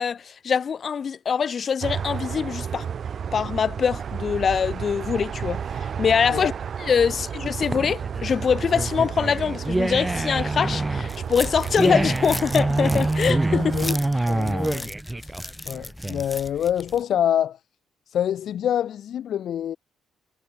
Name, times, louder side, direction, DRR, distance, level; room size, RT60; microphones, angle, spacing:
voice 1, 0.0-2.9 3.3-6.5 6.8-13.7, left 6 dB, 50° left, 1.2 m, -24 dB
sound 1, 1.8-13.9, right 7 dB, 55° right, 3.2 m, -32 dB
sound 2, 7.4-16.5, right 2 dB, 15° right, 0.7 m, -26 dB
sound 3, 11.1-17.0, left 2 dB, 10° left, 3.2 m, -38 dB
voice 2, 13.5-14.9 15.2-15.3 15.7-17.6 18.1-19.8, left 10 dB, 70° left, 0.4 m, -26 dB
cardioid pair, 90°, 0 cm